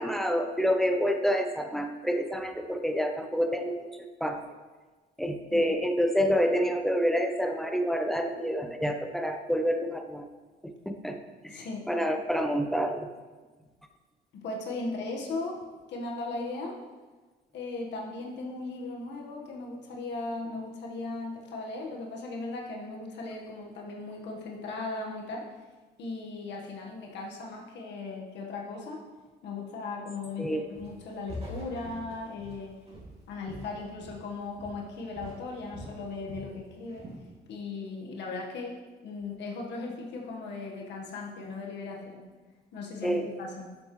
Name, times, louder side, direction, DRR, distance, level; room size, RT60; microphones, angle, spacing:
voice 1, 0.0-3.9 4.2-4.4 5.2-10.3 10.9-11.2 11.4-11.6 11.9-13.1 30.4-30.6 43.0-43.2, equal, ahead, 4 dB, 0.8 m, -28 dB
voice 2, 11.5-11.9 14.3-15.6 15.9-16.8 17.5-25.5 26.0-29.0 29.4-32.8 33.3-37.1 37.5-38.8 39.0-42.2 42.7-43.7, left 3 dB, 75° left, -1 dB, 1.6 m, -37 dB
Walk footsteps, 30.8-31.0 31.3-34.3 34.6-34.9 35.2-36.5 36.9-37.3, equal, 35° right, 2.7 m, -44 dB
12.0 x 7.2 x 3.3 m, 1.3 s
cardioid pair, 125°, 18 cm